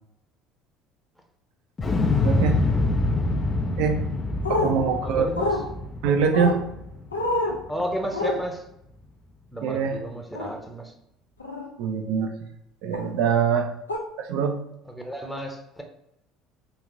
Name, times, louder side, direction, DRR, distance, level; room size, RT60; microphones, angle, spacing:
Explosion, 1.8-7.8 8.1-8.2, left 2 dB, 25° left, 0.4 m, -26 dB
voice 1, 2.2-2.6 3.8-4.1 4.5-5.3 6.0-6.6 9.6-10.0 11.8-12.5 12.8-13.7 14.2-14.6, right 6 dB, 60° right, 0.5 m, -24 dB
sound 1, 4.4-4.7 5.4-5.6 6.3-6.6 7.1-7.6 8.1-8.4 10.4-10.5 11.4-11.7 12.9-13.1 13.9-14.0, left 2 dB, 80° left, 0.5 m, -26 dB
voice 2, 5.0-5.6 7.7-8.7 9.5-10.9 14.9-15.8, equal, ahead, 0.8 m, -32 dB
3.4 x 3.1 x 3.7 m
figure-of-eight pair, 60°, 0 cm